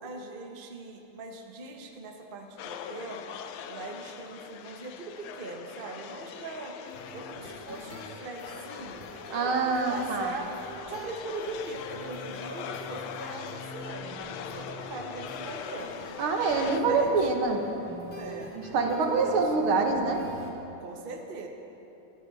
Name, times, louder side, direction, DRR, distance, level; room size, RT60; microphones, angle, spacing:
voice 1, 0.0-3.3 3.7-6.8 7.1-10.5 10.9-16.0 16.6-17.4 18.1-19.5 20.8-21.5, right 3 dB, 35° right, 2 dB, 0.9 m, -41 dB
sound 1, 2.6-16.8, left 8 dB, 85° left, 1.6 m, -42 dB
sound 2, 6.8-20.5, left 1 dB, 30° left, 1.7 m, -45 dB
voice 2, 9.3-10.3 16.2-17.6 18.6-20.2, right 4 dB, 80° right, 2 dB, 2.1 m, -25 dB
19.0 x 12.5 x 4.1 m, 3.0 s
omnidirectional pair, 2.3 m